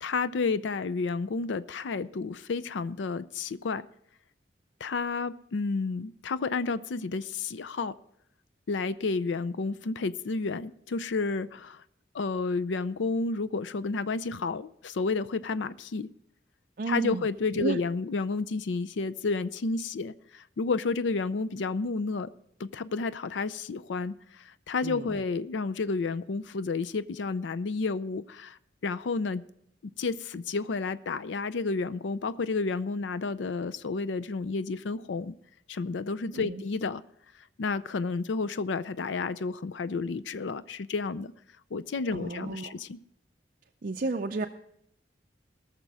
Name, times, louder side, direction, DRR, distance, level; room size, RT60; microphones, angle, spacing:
voice 1, 0.0-3.9 4.8-8.0 8.7-11.8 12.1-16.1 16.9-22.3 22.6-29.4 30.0-35.3 35.7-37.0 37.6-41.3 41.7-43.0, left 4 dB, 90° left, 16 dB, 0.5 m, -31 dB
voice 2, 16.8-17.2 17.6-17.8 24.8-25.1 36.3-36.6 42.1-42.7 43.8-44.5, right 3 dB, 50° right, 5 dB, 0.5 m, -32 dB
19.0 x 6.7 x 4.7 m, 0.72 s
head